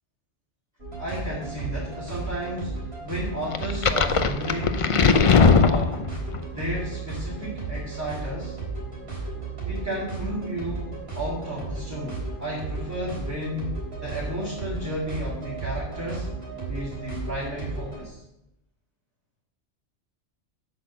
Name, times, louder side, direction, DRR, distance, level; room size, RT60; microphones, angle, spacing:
sound 1, 0.8-18.0, right 3 dB, 60° right, 4.0 m, -34 dB
voice 1, 1.0-6.1 6.5-8.6 9.6-16.3 16.7-18.2, equal, 15° right, -6 dB, 2.3 m, -33 dB
sound 2, 3.5-6.4, left 5 dB, 45° left, 0.4 m, -19 dB
8.4 x 6.4 x 7.2 m, 0.85 s
omnidirectional pair, 1.2 m